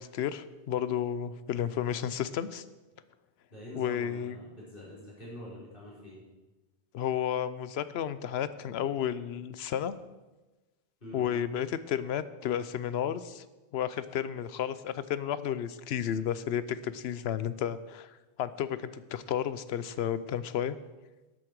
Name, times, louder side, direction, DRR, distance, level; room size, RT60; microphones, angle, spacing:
voice 1, 0.0-2.6 3.7-4.4 6.9-9.9 11.1-13.4 13.7-18.1 18.4-20.8, left 9 dB, 75° left, 15 dB, 0.8 m, -32 dB
voice 2, 3.5-6.2 11.0-11.2, left 1 dB, 55° left, -6 dB, 4.6 m, -45 dB
12.5 x 8.6 x 4.7 m, 1.1 s
omnidirectional pair, 1.1 m